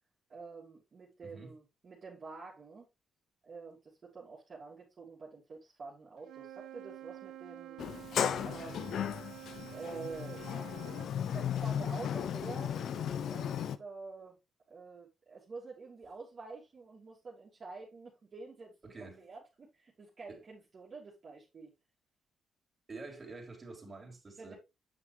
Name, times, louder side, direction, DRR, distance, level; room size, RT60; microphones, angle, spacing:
voice 1, 0.3-2.9 3.4-7.8 8.4-9.2 9.7-10.4 11.2-14.4 14.7-21.7 24.4-24.5, right 4 dB, 40° right, 3.2 m, -48 dB
voice 2, 1.2-1.5 11.9-12.0 18.8-19.2 20.3-20.4 22.9-24.6, right 3 dB, 25° right, 4.2 m, -48 dB
Wind instrument woodwind instrument, 6.2-11.1, right 13 dB, 85° right, 2.3 m, -49 dB
Sliding door, 7.8-13.8, left 9 dB, 65° left, 0.7 m, -35 dB
8.8 x 6.0 x 3.4 m
cardioid pair, 90°, 0 cm